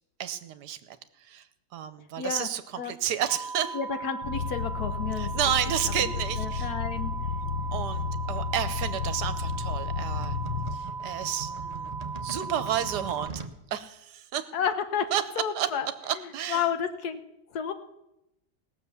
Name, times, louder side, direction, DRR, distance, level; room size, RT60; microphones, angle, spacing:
voice 1, 0.2-1.5 1.7-3.8 5.2-6.7 7.7-10.4 10.7-11.9 12.2-13.3 13.7-14.5 15.1-15.2 15.5-15.7 16.0-16.7, right 10 dB, 75° right, 12 dB, 1.3 m, -31 dB
voice 2, 2.2-2.5 2.8-2.9 3.7-5.3 5.8-5.9 6.4-7.1 14.5-15.1 15.4-15.9 16.5-17.2 17.5-17.7, left 7 dB, 65° left, 9 dB, 1.4 m, -30 dB
sound 1, 3.3-13.3, right 5 dB, 5° right, 0.3 m, -38 dB
sound 2, 4.2-10.8, left 6 dB, 45° left, 1.0 m, -32 dB
sound 3, 7.9-13.6, right 4 dB, 35° right, 0.6 m, -42 dB
18.0 x 6.8 x 7.0 m, 0.88 s
omnidirectional pair, 1.8 m